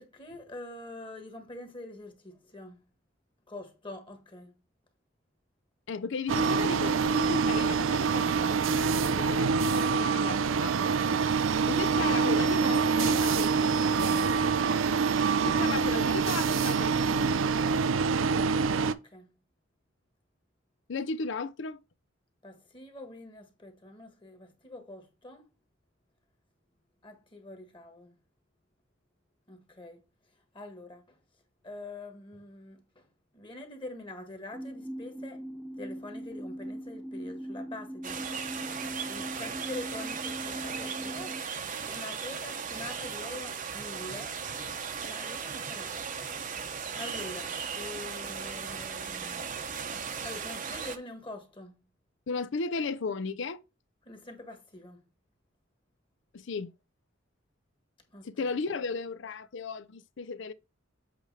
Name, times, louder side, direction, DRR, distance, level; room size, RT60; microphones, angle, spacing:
voice 1, 0.0-2.8 3.5-4.5 10.8-11.3 14.9-15.3 18.8-19.3 22.4-25.5 27.0-28.1 29.5-30.0 30.5-31.2 31.6-33.1 33.3-35.4 35.8-38.2 39.1-44.3 45.0-46.0 46.9-49.4 50.2-51.7 54.0-55.0 58.1-58.3, left 2 dB, 25° left, 1.5 m, -45 dB
voice 2, 5.9-10.7 11.7-14.2 15.4-17.4 20.9-21.8 52.3-53.6 56.3-56.7 58.2-60.5, left 4 dB, 65° left, 0.5 m, -35 dB
sound 1, 6.3-18.9, right 5 dB, 80° right, 0.5 m, -26 dB
sound 2, 34.5-41.4, equal, ahead, 1.0 m, -40 dB
sound 3, 38.0-51.0, right 6 dB, 40° right, 0.8 m, -37 dB
8.0 x 3.3 x 4.8 m
head